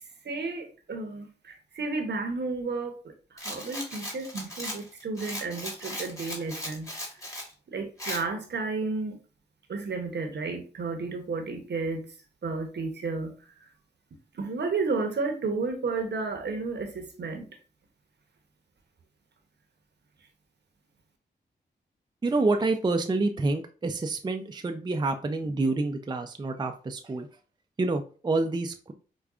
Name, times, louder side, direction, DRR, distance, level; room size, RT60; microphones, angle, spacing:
voice 1, 0.2-3.1 3.4-6.9 7.7-9.2 9.7-12.1 12.4-13.3 14.3-17.5, right 3 dB, 65° right, 4 dB, 0.8 m, -32 dB
Rattle, 3.4-7.5 8.0-8.2, left 1 dB, 15° left, 1.4 m, -37 dB
voice 2, 22.2-27.3 27.8-28.9, right 3 dB, 25° right, 5 dB, 0.4 m, -28 dB
4.8 x 2.2 x 2.4 m, 0.37 s
cardioid pair, 45°, 19 cm